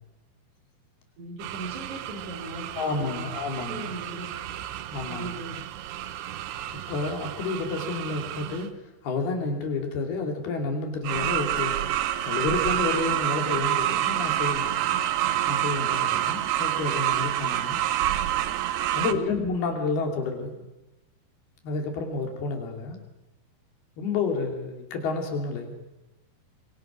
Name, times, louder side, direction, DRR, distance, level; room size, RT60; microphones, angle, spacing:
voice 1, 1.2-3.3 3.7-4.3 5.0-5.6 18.9-19.3, right 1 dB, 50° right, 4 dB, 4.4 m, -39 dB
sound 1, 1.4-8.7 11.0-19.1, right 12 dB, 80° right, 2.9 m, -28 dB
voice 2, 2.8-3.9 4.9-5.3 6.9-8.7 9.0-11.8 12.3-14.8 15.5-17.8 18.9-20.6 21.6-23.0 24.0-25.7, left 4 dB, 75° left, 3 dB, 4.7 m, -30 dB
25.0 x 23.0 x 6.2 m, 1.0 s
omnidirectional pair, 4.6 m